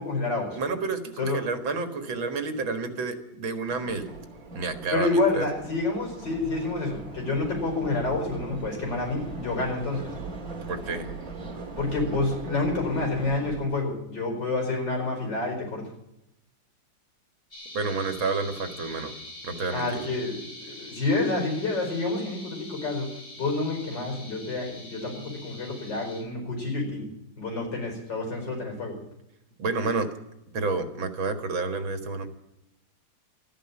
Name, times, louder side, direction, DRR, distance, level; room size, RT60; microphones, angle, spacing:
voice 1, 0.0-0.6 1.2-1.5 4.9-10.1 11.8-15.9 19.7-23.1 23.4-27.1 27.4-29.0, left 3 dB, 60° left, 2 dB, 5.7 m, -28 dB
voice 2, 0.5-4.1 4.5-5.5 10.7-11.1 17.7-19.1 19.4-20.0 29.6-30.1 30.5-32.3, right 4 dB, 80° right, 8 dB, 2.4 m, -29 dB
sound 1, 3.7-13.6, right 3 dB, 45° right, 2.6 m, -40 dB
sound 2, 17.5-26.2, left 1 dB, 25° left, 5.3 m, -44 dB
13.5 x 10.5 x 9.8 m, 0.86 s
omnidirectional pair, 2.1 m